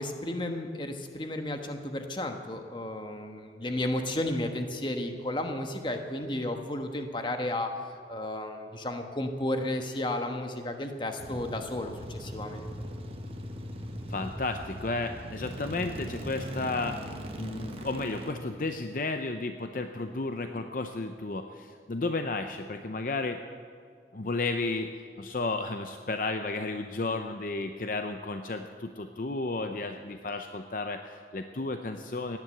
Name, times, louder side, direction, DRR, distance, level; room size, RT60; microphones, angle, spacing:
voice 1, 0.0-7.7 8.1-12.7, left 1 dB, 25° left, 5 dB, 1.2 m, -33 dB
sound 1, 11.2-18.3, equal, 35° right, 1.2 m, -39 dB
voice 2, 14.1-17.0 17.4-23.4 24.1-24.9 25.2-32.4, left 3 dB, 50° left, 7 dB, 0.6 m, -33 dB
17.5 x 10.5 x 7.8 m, 2.1 s
head